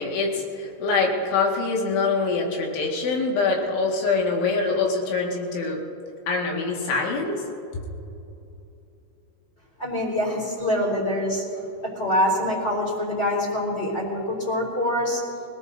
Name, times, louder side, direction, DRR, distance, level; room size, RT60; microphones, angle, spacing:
voice 1, 0.0-5.8 6.3-7.4 7.7-7.8, left 4 dB, 70° left, -1 dB, 4.3 m, -24 dB
voice 2, 9.8-11.7 12.0-15.2, left 1 dB, 15° left, -5 dB, 4.2 m, -25 dB
25.0 x 18.5 x 2.8 m, 2.7 s
omnidirectional pair, 5.7 m